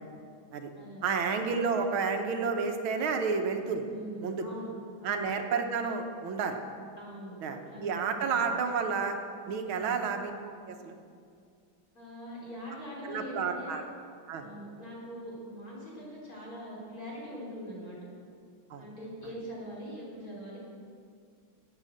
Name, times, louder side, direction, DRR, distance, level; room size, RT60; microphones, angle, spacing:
voice 1, 1.0-3.8 4.2-4.4 5.0-6.6 7.4-9.2 9.5-10.3 10.7-11.0 13.1-13.8 14.3-14.5 18.7-18.8, right 5 dB, 85° right, 5 dB, 1.9 m, -30 dB
voice 2, 3.9-4.7 5.0-5.3 7.0-8.5 9.7-10.0 11.9-13.8 14.4-18.0 18.8-20.6, equal, 45° left, -5 dB, 4.4 m, -43 dB
12.5 x 8.8 x 7.8 m, 2.3 s
omnidirectional pair, 2.2 m